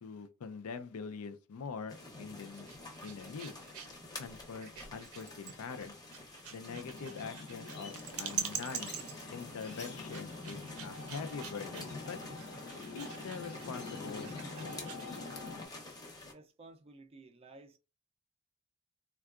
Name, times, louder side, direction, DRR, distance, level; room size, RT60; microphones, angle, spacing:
voice 1, 0.0-2.7 3.0-3.5 4.2-6.0 6.5-9.0 9.3-12.2 12.9-14.8, left 5 dB, 85° left, 0.4 m, -44 dB
sound 1, 1.9-16.3, left 2 dB, 20° left, 0.7 m, -49 dB
sound 2, 2.5-15.1, right 8 dB, 80° right, 0.5 m, -45 dB
sound 3, 6.7-15.7, left 3 dB, 50° left, 0.7 m, -46 dB
voice 2, 16.3-17.8, right 2 dB, 25° right, 0.4 m, -54 dB
3.6 x 2.3 x 2.3 m
head